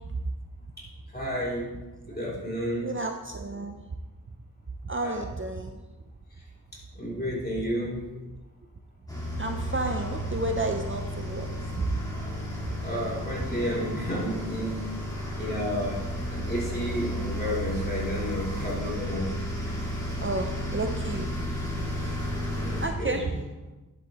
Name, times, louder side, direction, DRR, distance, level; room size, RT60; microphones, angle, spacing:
voice 1, 1.1-1.7 2.1-2.9 5.0-5.2 6.9-8.0 12.8-14.9 15.3-16.0 16.3-19.3 22.6-23.2, equal, 25° left, -6 dB, 3.2 m, -31 dB
voice 2, 2.8-3.8 4.8-5.8 9.3-11.5 11.7-12.0 20.2-21.3 22.0-22.2 22.8-23.4, right 2 dB, 35° right, 5 dB, 0.6 m, -31 dB
sound 1, 9.1-22.9, equal, 10° left, 2.4 m, -33 dB
10.5 x 7.7 x 3.1 m, 1.1 s
wide cardioid pair, 60°, 35 cm